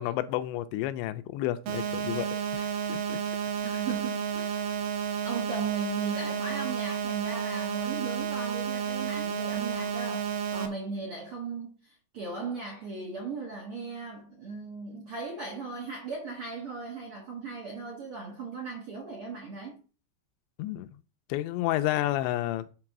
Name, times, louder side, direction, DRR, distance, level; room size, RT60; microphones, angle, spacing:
voice 1, 0.0-3.2 20.6-20.9 21.3-22.7, left 14 dB, 85° left, 2.8 m, -31 dB
sound 1, 1.7-10.7, right 7 dB, 90° right, 3.5 m, -31 dB
voice 2, 3.6-4.7 5.2-19.8, right 3 dB, 55° right, 1.6 m, -38 dB
7.8 x 3.9 x 6.0 m
omnidirectional pair, 5.2 m